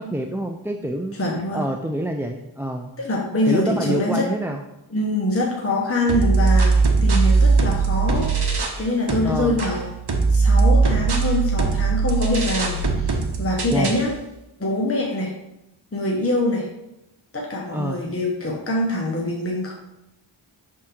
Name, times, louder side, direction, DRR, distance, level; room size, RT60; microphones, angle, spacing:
voice 1, 0.0-1.2 1.5-2.9 3.5-4.6 9.2-9.6 13.7-13.9 17.7-18.0, right 1 dB, 5° right, 2 dB, 0.4 m, -26 dB
voice 2, 1.1-1.7 3.0-4.3 4.9-9.9 10.3-14.1 14.6-15.3 15.9-16.7 17.3-19.7, left 1 dB, 30° left, -1 dB, 1.0 m, -24 dB
sound 1, 6.1-8.8 9.1-14.1, right 4 dB, 55° right, 0.9 m, -20 dB
6.2 x 3.7 x 4.4 m, 0.90 s
wide cardioid pair, 45°, 48 cm